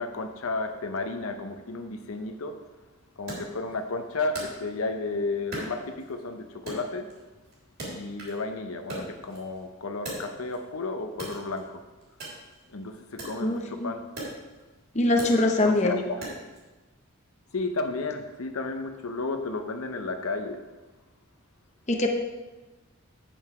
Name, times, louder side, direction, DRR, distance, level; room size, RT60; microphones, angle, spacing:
voice 1, 0.0-2.6 3.2-7.1 7.9-11.8 12.7-14.0 15.6-16.3 17.5-20.6, left 3 dB, 80° left, 6 dB, 0.8 m, -32 dB
Wood, 3.3-5.1 5.5-6.3 6.7-8.5 8.8-10.7 11.1-16.6, right 1 dB, 50° right, 3.4 m, -40 dB
voice 2, 13.4-13.9 14.9-16.0 21.9-22.1, left 2 dB, 30° left, 2 dB, 0.8 m, -23 dB
8.5 x 7.1 x 4.9 m, 1.2 s
head